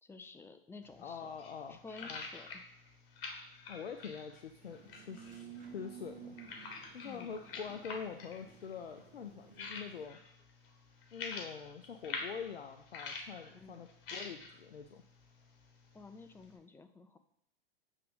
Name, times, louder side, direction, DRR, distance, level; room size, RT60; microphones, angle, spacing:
voice 1, 0.0-1.3 1.7-2.6 7.0-7.4 13.5-13.8 15.9-17.2, left 3 dB, 10° left, 8 dB, 0.4 m, -52 dB
sound 1, 0.8-16.6, left 4 dB, 60° left, 1.4 m, -48 dB
voice 2, 1.0-2.2 3.7-6.4 6.9-10.2 11.1-15.0, left 6 dB, 85° left, 6 dB, 0.5 m, -45 dB
sound 2, 4.6-10.0, right 7 dB, 25° right, 1.7 m, -54 dB
7.6 x 3.6 x 5.2 m, 0.73 s
figure-of-eight pair, 90°, 30 cm